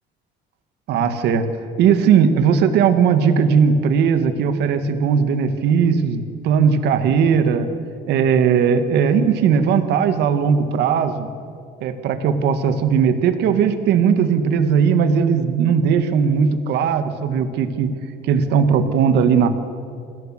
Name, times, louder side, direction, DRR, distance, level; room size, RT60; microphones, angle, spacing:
voice 1, 0.9-1.4 1.8-7.7 8.1-11.3 11.8-17.9 18.2-19.5, right 6 dB, 65° right, 8 dB, 1.9 m, -18 dB
28.0 x 16.5 x 7.6 m, 2.3 s
cardioid pair, 180°, 19 cm